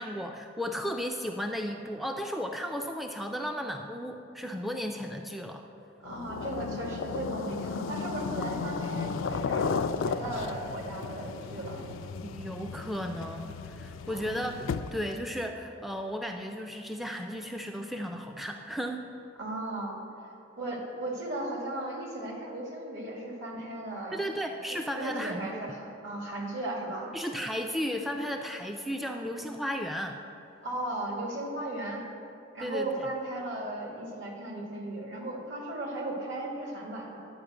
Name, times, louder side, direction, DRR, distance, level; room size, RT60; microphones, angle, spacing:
voice 1, 0.0-5.6 12.2-19.0 24.1-25.6 27.1-30.2 32.6-33.1, equal, ahead, 3 dB, 0.3 m, -34 dB
voice 2, 6.0-11.8 14.1-14.4 19.4-20.0 20.6-24.3 24.9-27.1 30.6-32.0 32.5-37.3, right 1 dB, 65° right, -1 dB, 1.9 m, -36 dB
sound 1, 6.1-15.2, left 5 dB, 90° left, 0.4 m, -34 dB
10.0 x 5.0 x 7.8 m, 2.7 s
head